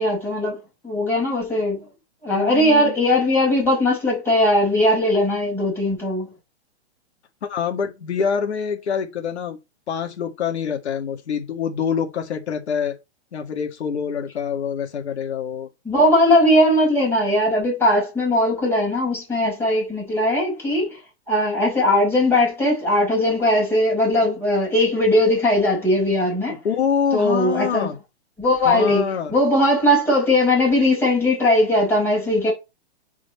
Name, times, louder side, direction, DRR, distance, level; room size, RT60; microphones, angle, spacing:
voice 1, 0.0-1.8 2.2-6.3 15.8-21.0 21.3-26.6 27.1-27.9 28.4-32.5, left 1 dB, 5° left, 5.7 m, -19 dB
voice 2, 2.3-2.9 7.4-9.6 9.9-13.0 13.3-15.7 26.5-28.0 28.6-29.3, left 7 dB, 75° left, 2.0 m, -25 dB
11.0 x 5.0 x 4.3 m
hypercardioid pair, 145°, 33 cm